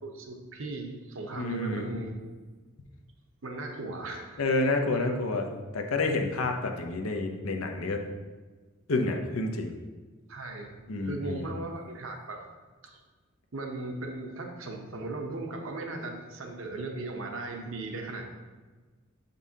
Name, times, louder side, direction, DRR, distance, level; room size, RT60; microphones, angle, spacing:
voice 1, 0.0-2.2 3.4-5.2 6.4-6.5 10.3-10.7 11.0-12.4 12.8-13.0 13.5-18.3, right 2 dB, 65° right, 3 dB, 0.8 m, -37 dB
voice 2, 1.4-1.9 4.4-5.5 5.7-8.0 8.9-9.7 10.9-11.5, left 2 dB, 85° left, 4 dB, 0.7 m, -29 dB
6.3 x 5.4 x 2.8 m, 1.3 s
head